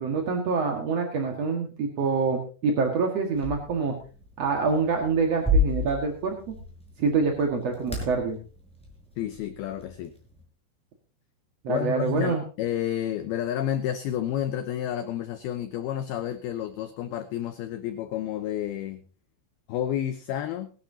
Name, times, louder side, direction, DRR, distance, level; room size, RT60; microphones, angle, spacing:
voice 1, 0.0-4.0 4.4-6.5 7.0-8.4 11.6-12.4, right 4 dB, 50° right, 2 dB, 2.1 m, -26 dB
sound 1, 3.3-10.4, left 1 dB, ahead, 5.1 m, -32 dB
voice 2, 9.2-10.1 11.7-19.0 19.7-20.7, left 11 dB, 75° left, 8 dB, 2.4 m, -30 dB
21.0 x 11.5 x 2.8 m, 0.37 s
omnidirectional pair, 5.3 m